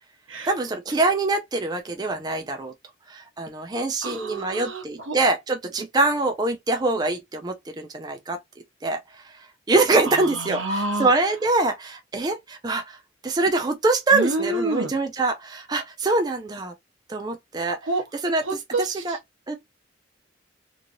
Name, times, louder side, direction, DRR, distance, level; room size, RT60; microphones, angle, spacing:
voice 1, 0.5-2.7 3.1-8.4 8.8-16.7 17.1-17.8 18.2-18.4 18.8-19.2 19.5-19.6, right 2 dB, 20° right, 0.4 m, -24 dB
voice 2, 4.0-5.2 10.1-11.1 14.1-14.9 17.8-18.0 18.4-19.2, right 2 dB, 80° right, 1.0 m, -28 dB
3.0 x 2.6 x 2.6 m
head